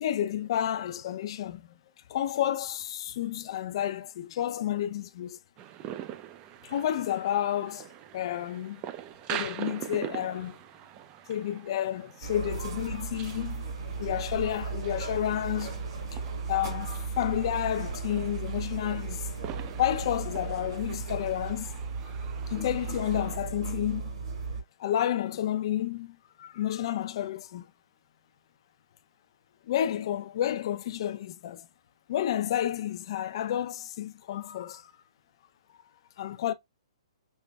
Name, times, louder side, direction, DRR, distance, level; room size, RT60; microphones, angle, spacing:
voice 1, 0.0-1.7 2.1-5.4 6.6-8.8 9.3-10.6 11.3-13.7 14.0-15.8 16.1-16.2 16.5-19.3 19.8-21.7 22.5-24.1 24.8-27.7 29.7-31.7 32.1-34.8 36.2-36.5, left 11 dB, 50° left, 0.5 m, -30 dB
sound 1, 5.6-23.4, right 11 dB, 25° right, 0.5 m, -44 dB
sound 2, 12.2-24.6, right 4 dB, 55° right, 2.4 m, -36 dB
5.5 x 3.2 x 2.2 m
hypercardioid pair, 140°, 3 cm